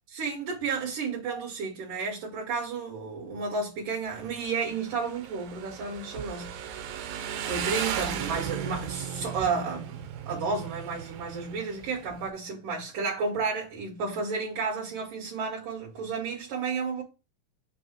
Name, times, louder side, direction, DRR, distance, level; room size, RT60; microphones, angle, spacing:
voice 1, 0.1-6.5 7.4-17.0, right 4 dB, 60° right, 3.5 m, -32 dB
Motorcycle, 4.1-12.3, right 9 dB, 85° right, 2.7 m, -36 dB
7.8 x 2.8 x 6.0 m
omnidirectional pair, 4.3 m